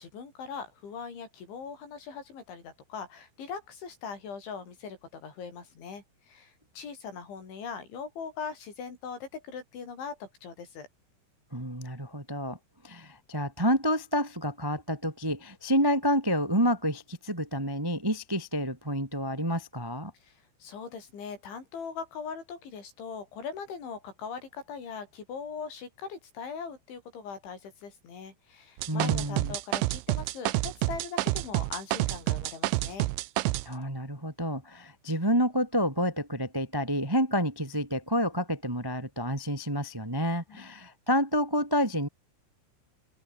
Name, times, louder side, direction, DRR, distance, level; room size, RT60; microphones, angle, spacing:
voice 1, 0.0-10.9 20.2-33.1 40.5-40.7, left 6 dB, 70° left, 8.2 m, -41 dB
voice 2, 11.5-12.6 12.8-20.1 28.9-29.6 33.6-42.1, equal, 30° right, 0.4 m, -29 dB
sound 1, 28.8-33.7, right 18 dB, 80° right, 3.2 m, -28 dB
open air
omnidirectional pair, 5.6 m